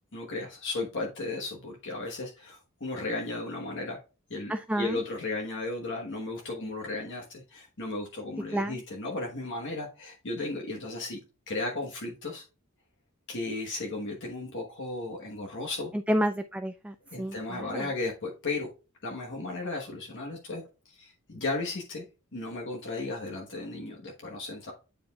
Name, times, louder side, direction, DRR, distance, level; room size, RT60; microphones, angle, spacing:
voice 1, 0.1-4.0 4.3-11.2 11.5-12.4 13.3-15.9 17.1-18.7 19.0-22.0 22.3-24.7, left 2 dB, 55° left, 0 dB, 1.2 m, -35 dB
voice 2, 4.5-5.0 8.5-8.8 16.1-17.8, equal, 5° right, 8 dB, 0.3 m, -30 dB
9.1 x 5.1 x 2.3 m, 0.32 s
head